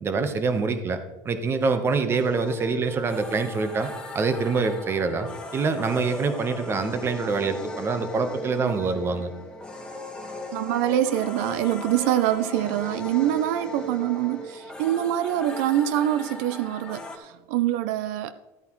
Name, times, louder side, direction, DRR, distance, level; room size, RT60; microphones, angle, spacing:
voice 1, 0.0-9.3, right 4 dB, 30° right, 1.0 m, -25 dB
sound 1, 2.1-17.2, left 2 dB, 10° left, 1.4 m, -38 dB
voice 2, 8.6-9.0 10.5-18.3, right 12 dB, 85° right, 0.5 m, -25 dB
13.0 x 9.1 x 3.1 m
cardioid pair, 130°, 9 cm